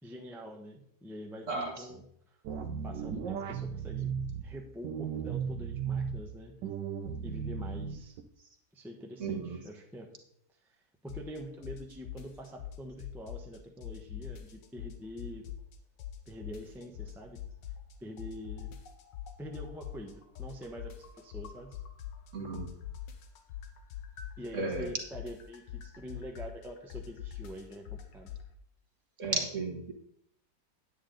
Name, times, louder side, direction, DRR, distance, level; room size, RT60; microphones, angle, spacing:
voice 1, 0.0-2.0 2.3-2.4 2.8-4.2 4.4-6.5 7.2-8.1 8.7-10.1 11.0-15.4 16.3-17.4 18.0-18.8 19.4-21.7 24.4-28.3, equal, ahead, 1 dB, 0.7 m, -45 dB
voice 2, 1.5-1.9 9.2-9.6 22.3-22.7 24.5-24.9 29.2-29.9, right 3 dB, 45° right, 3 dB, 1.5 m, -34 dB
sound 1, 2.4-4.4 4.8-6.2 6.6-8.2, right 7 dB, 80° right, 1.4 m, -35 dB
sound 2, 11.1-11.4 11.6-13.6 13.8-15.7 16.0-17.9 18.2-22.3 22.5-28.4, left 10 dB, 85° left, 1.6 m, -43 dB
9.6 x 8.5 x 3.9 m, 0.69 s
omnidirectional pair, 1.9 m